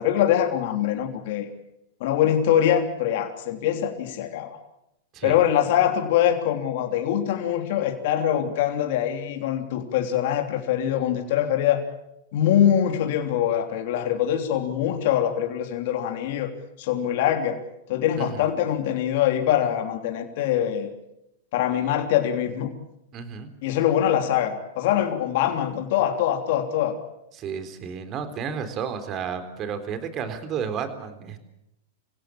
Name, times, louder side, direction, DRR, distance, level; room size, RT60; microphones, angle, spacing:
voice 1, 0.0-1.5 2.0-4.6 5.2-11.8 12.3-16.5 16.8-17.6 17.9-20.9 21.5-22.7 23.6-27.0, left 10 dB, 60° left, 4 dB, 3.3 m, -23 dB
voice 2, 23.1-23.5 27.3-31.4, right 7 dB, 35° right, 9 dB, 3.8 m, -32 dB
27.0 x 17.0 x 8.8 m, 0.86 s
hypercardioid pair, 120°, 0 cm